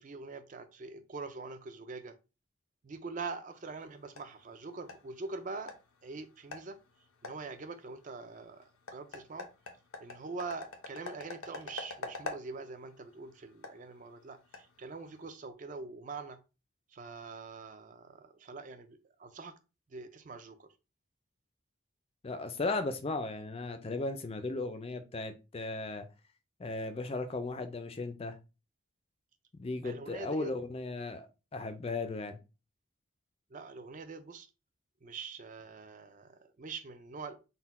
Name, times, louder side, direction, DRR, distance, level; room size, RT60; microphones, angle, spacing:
voice 1, 0.0-2.2 2.8-5.7 6.0-6.8 7.2-9.5 10.0-16.4 16.9-19.5 19.9-20.7 29.8-30.5 33.5-34.5 35.0-37.4, right 4 dB, 35° right, 0.4 m, -44 dB
sound 1, 3.5-15.3, left 3 dB, 85° left, 0.7 m, -48 dB
voice 2, 22.2-26.1 26.6-28.4 29.6-31.3 31.5-32.4, left 3 dB, 25° left, 0.4 m, -36 dB
4.1 x 2.2 x 4.1 m
head